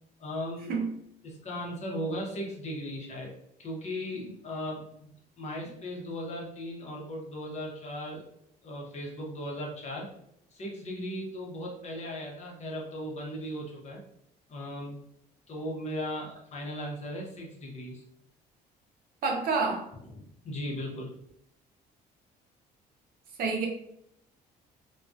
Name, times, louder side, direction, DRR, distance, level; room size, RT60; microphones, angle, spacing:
voice 1, 0.2-0.8 1.2-3.3 3.6-5.1 5.4-8.2 8.6-10.1 10.5-14.0 14.5-15.0 15.5-18.0 20.1-21.1, equal, 40° left, -2 dB, 0.8 m, -37 dB
voice 2, 19.2-19.9 23.4-23.7, right 4 dB, 60° right, 1 dB, 0.6 m, -28 dB
2.3 x 2.2 x 2.5 m, 0.74 s
cardioid pair, 110°, 17 cm